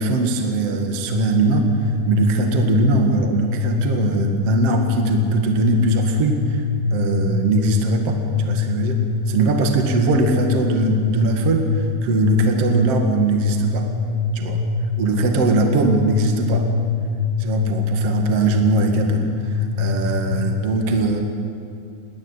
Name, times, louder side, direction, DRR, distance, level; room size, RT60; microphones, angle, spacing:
voice 1, 0.0-6.6 6.9-13.9 14.3-14.6 15.0-16.7 17.4-21.2, right 3 dB, 45° right, 3 dB, 2.2 m, -21 dB
sound 1, 1.1-20.7, left 4 dB, 80° left, 3.1 m, -23 dB
28.5 x 12.5 x 9.7 m, 2.5 s
omnidirectional pair, 5.2 m